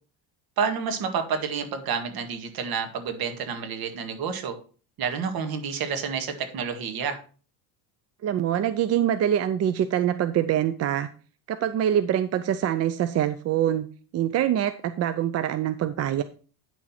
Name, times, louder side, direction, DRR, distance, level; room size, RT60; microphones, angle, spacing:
voice 1, 0.6-4.6 5.0-7.2, right 6 dB, 50° right, 6 dB, 2.0 m, -29 dB
voice 2, 8.2-11.1 11.5-13.9 14.1-16.2, right 10 dB, 35° right, 10 dB, 0.5 m, -24 dB
9.3 x 6.3 x 4.3 m, 0.38 s
cardioid pair, 150°, 46 cm